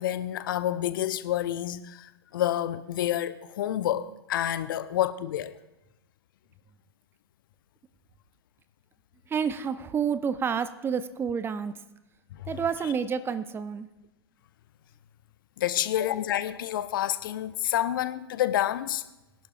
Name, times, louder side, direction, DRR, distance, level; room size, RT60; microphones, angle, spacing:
voice 1, 0.0-5.5 12.4-12.5 15.6-19.0, left 12 dB, 55° left, 0.6 m, -28 dB
voice 2, 9.3-11.7 12.5-13.9, right 7 dB, 15° right, 0.5 m, -29 dB
23.0 x 11.5 x 2.4 m
figure-of-eight pair, 95°, 13 cm